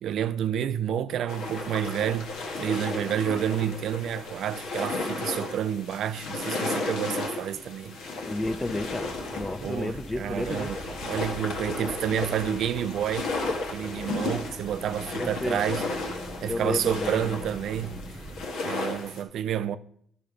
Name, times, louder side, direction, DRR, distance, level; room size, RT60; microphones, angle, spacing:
voice 1, 0.0-8.0 9.6-13.3 13.7-18.0 18.6-19.8, right 9 dB, 75° right, 0.4 m, -29 dB
sound 1, 1.3-19.2, left 3 dB, 85° left, 1.4 m, -34 dB
voice 2, 8.3-10.7 15.1-15.7 16.4-17.4, left 2 dB, 20° left, 0.5 m, -32 dB
sound 2, 8.4-18.5, right 1 dB, 15° right, 0.9 m, -43 dB
10.5 x 4.3 x 5.1 m
cardioid pair, 90°, 0 cm